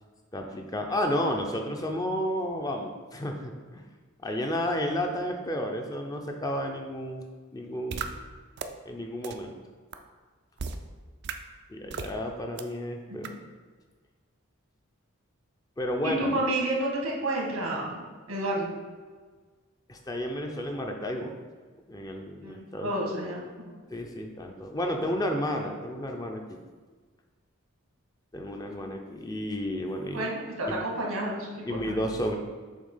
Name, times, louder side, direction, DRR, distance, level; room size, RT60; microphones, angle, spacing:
voice 1, 0.3-3.8 4.2-8.1 8.9-9.6 11.7-13.3 15.8-16.3 19.9-21.3 21.9-22.9 23.9-26.6 28.3-30.3 30.7-30.8 31.6-32.4, equal, 15° left, 2 dB, 0.5 m, -32 dB
sound 1, 7.9-8.1 8.6-8.7 9.2-9.3 9.9-10.0 10.6-10.8 11.2-11.3 11.9-12.1 12.6-12.7 13.2-13.3, right 6 dB, 50° right, 0.4 m, -33 dB
voice 2, 16.0-18.7 22.4-23.7 30.1-32.0, right 1 dB, 90° right, -2 dB, 1.7 m, -31 dB
7.3 x 2.8 x 5.5 m, 1.4 s
head